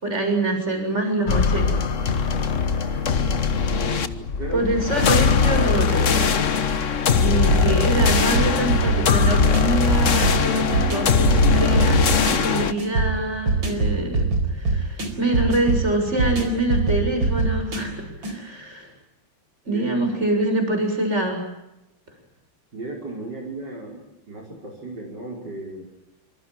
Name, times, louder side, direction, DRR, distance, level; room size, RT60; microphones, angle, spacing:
voice 1, 0.0-1.7 2.1-3.0 4.5-6.4 7.0-18.9 19.7-21.4, right 2 dB, 35° right, 5 dB, 7.3 m, -25 dB
sound 1, 1.3-12.7, left 5 dB, 45° left, 1.5 m, -21 dB
voice 2, 3.7-4.6 19.7-19.8 22.7-25.9, right 2 dB, 60° right, -1 dB, 5.8 m, -35 dB
sound 2, 7.5-18.4, right 3 dB, 85° right, 5.1 m, -24 dB
27.0 x 26.0 x 7.5 m, 0.92 s
omnidirectional pair, 2.1 m